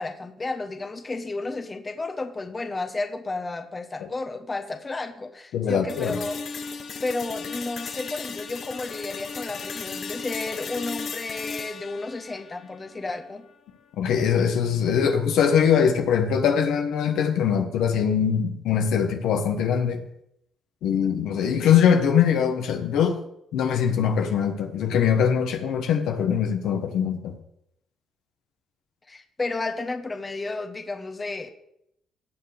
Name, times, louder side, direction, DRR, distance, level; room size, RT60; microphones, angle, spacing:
voice 1, 0.0-6.4 7.0-13.5 29.1-31.5, left 3 dB, 25° left, 6 dB, 1.2 m, -32 dB
voice 2, 5.5-6.2 14.0-20.0 20.8-23.2 23.5-27.4, left 7 dB, 85° left, 4 dB, 1.3 m, -22 dB
sound 1, 5.9-13.9, left 5 dB, 55° left, 1.1 m, -36 dB
17.5 x 7.1 x 3.5 m, 0.77 s
cardioid pair, 90°, 0 cm